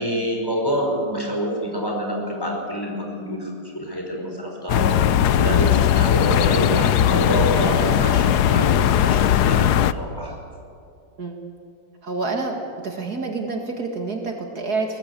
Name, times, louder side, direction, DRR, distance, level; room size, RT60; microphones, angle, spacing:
voice 1, 0.0-9.7 9.9-10.4, equal, 10° left, 0 dB, 4.8 m, -27 dB
sound 1, 4.7-9.9, left 10 dB, 70° left, 1.2 m, -18 dB
voice 2, 12.0-12.6 12.8-15.0, right 3 dB, 60° right, 3 dB, 2.4 m, -27 dB
23.0 x 19.5 x 8.3 m, 2.5 s
omnidirectional pair, 1.9 m